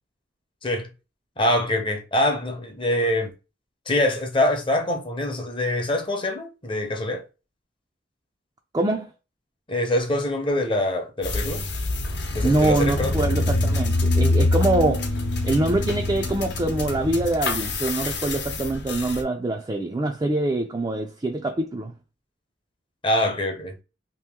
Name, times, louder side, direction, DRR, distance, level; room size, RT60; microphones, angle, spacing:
voice 1, 1.4-3.3 3.9-7.2 9.7-11.6 12.3-13.2 23.0-23.8, left 1 dB, 25° left, 0.8 m, -24 dB
voice 2, 8.7-9.1 12.4-15.2 15.4-21.9, right 2 dB, 20° right, 0.4 m, -24 dB
sound 1, 11.2-19.2, left 2 dB, 65° left, 0.9 m, -25 dB
2.9 x 2.6 x 3.6 m
head